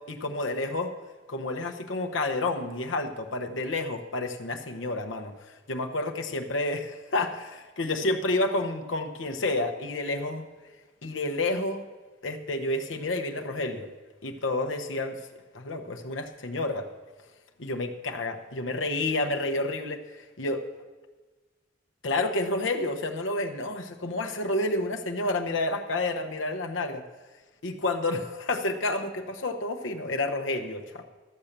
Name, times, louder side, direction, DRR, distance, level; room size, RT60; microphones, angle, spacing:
voice 1, 0.1-0.9 1.3-5.3 5.7-10.4 11.0-11.8 12.2-13.9 14.2-15.2 15.5-16.9 17.6-20.6 22.0-27.0 27.6-31.0, left 2 dB, 85° left, 4 dB, 1.0 m, -30 dB
13.0 x 7.3 x 6.7 m, 1.3 s
head